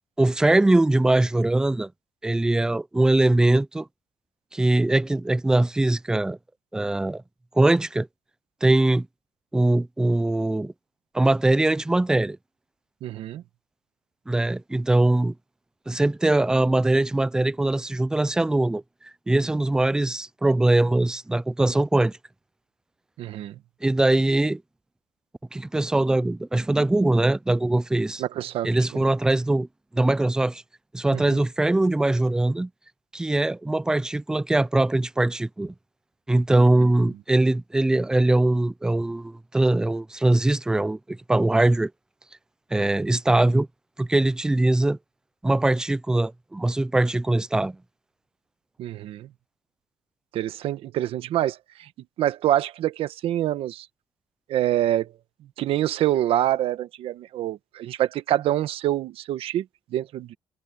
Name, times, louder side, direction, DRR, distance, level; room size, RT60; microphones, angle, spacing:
voice 1, 0.2-1.9 2.2-3.9 4.5-6.4 6.7-7.2 7.6-8.1 8.6-9.1 9.5-10.7 11.1-12.4 14.3-15.3 15.9-18.8 19.3-22.2 23.8-24.6 25.5-28.2 28.6-29.7 29.9-30.6 30.9-32.7 33.1-35.7 36.3-41.9 42.7-43.7 44.0-45.0 45.4-47.8, right 2 dB, 5° right, 0.4 m, -21 dB
voice 2, 13.0-13.4 23.2-23.6 28.2-29.0 31.1-31.4 36.6-36.9 48.8-49.3 50.3-51.9 52.2-53.9 54.5-55.1 55.6-60.3, right 13 dB, 80° right, 1.2 m, -26 dB
cardioid pair, 140°, 10 cm